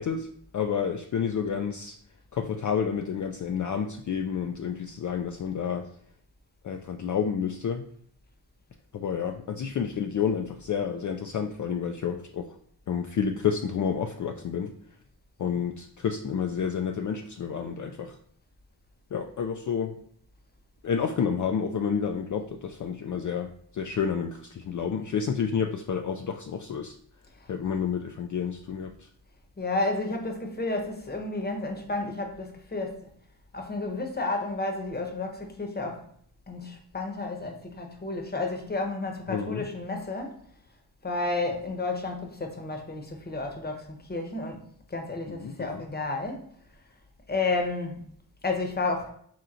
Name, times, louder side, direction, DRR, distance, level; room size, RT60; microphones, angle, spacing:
voice 1, 0.0-2.0 2.3-5.9 6.6-7.9 8.9-12.6 12.9-14.7 15.4-18.2 19.1-20.0 20.8-27.0 27.5-29.1 39.3-39.6 45.3-45.8, left 7 dB, 45° left, 0.4 m, -30 dB
voice 2, 29.6-33.1 33.5-36.1 36.5-40.5 41.0-46.5 47.3-48.0 48.4-49.1, left 3 dB, 25° left, 0.9 m, -31 dB
4.4 x 3.6 x 2.5 m
cardioid pair, 70°, 43 cm